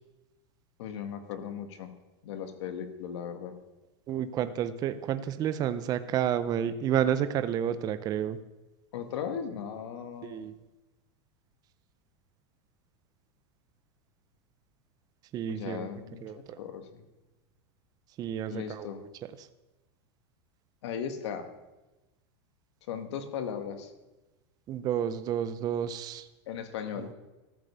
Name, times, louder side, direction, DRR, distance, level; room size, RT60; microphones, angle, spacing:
voice 1, 0.8-1.9 2.2-3.5 8.9-10.5 15.5-17.0 18.5-19.0 20.8-21.5 22.9-23.9 26.5-27.1, left 8 dB, 75° left, 8 dB, 1.4 m, -37 dB
voice 2, 4.1-8.4 10.2-10.5 15.3-15.9 16.2-16.6 18.2-18.9 24.7-26.3 27.0-27.1, right 9 dB, 25° right, 11 dB, 0.5 m, -30 dB
14.0 x 5.2 x 6.7 m, 1.1 s
supercardioid pair, 145°, 15 cm